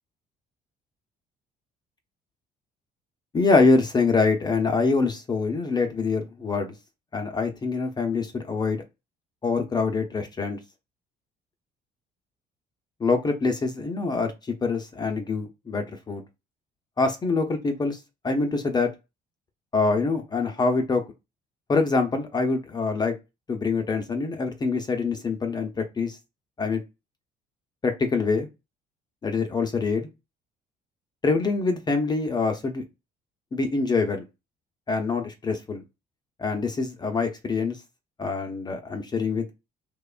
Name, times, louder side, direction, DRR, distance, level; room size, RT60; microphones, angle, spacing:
voice 1, 3.3-6.7 7.1-8.8 9.4-10.6 13.0-16.2 17.0-18.9 19.7-21.0 21.7-23.1 23.5-26.2 26.6-26.8 27.8-28.5 29.2-30.1 31.2-32.8 33.5-34.2 34.9-35.8 36.4-37.8 38.2-39.5, left 4 dB, 25° left, 0.5 m, -25 dB
2.8 x 2.1 x 2.3 m
cardioid pair, 110°, 17 cm